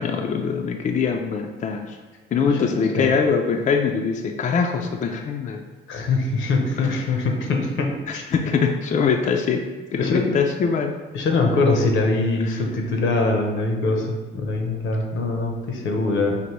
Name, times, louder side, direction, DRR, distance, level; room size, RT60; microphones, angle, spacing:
voice 1, 0.0-2.0 2.3-5.6 6.8-7.0 8.1-10.9 12.4-12.6, left 5 dB, 40° left, 3 dB, 0.4 m, -23 dB
voice 2, 2.4-3.1 5.9-8.2 10.0-10.3 11.1-16.4, left 3 dB, 75° left, 2 dB, 0.7 m, -23 dB
5.1 x 2.6 x 3.0 m, 1.3 s
cardioid pair, 90°, 20 cm